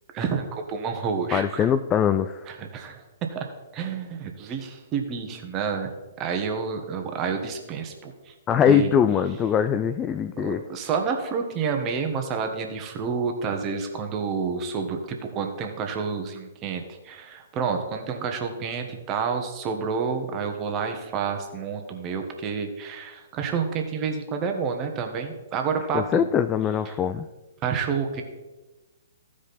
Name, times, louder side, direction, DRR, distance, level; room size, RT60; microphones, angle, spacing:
voice 1, 0.1-1.7 2.5-3.0 3.3-3.5 3.7-5.9 6.2-8.3 8.7-8.9 10.4-15.0 15.3-26.3 27.6-28.2, right 5 dB, 25° right, 4 dB, 1.3 m, -29 dB
voice 2, 1.3-2.4 8.5-10.6 25.9-27.3, left 8 dB, 20° left, 10 dB, 0.4 m, -22 dB
14.5 x 5.0 x 4.2 m, 1.2 s
figure-of-eight pair, 125°, 0 cm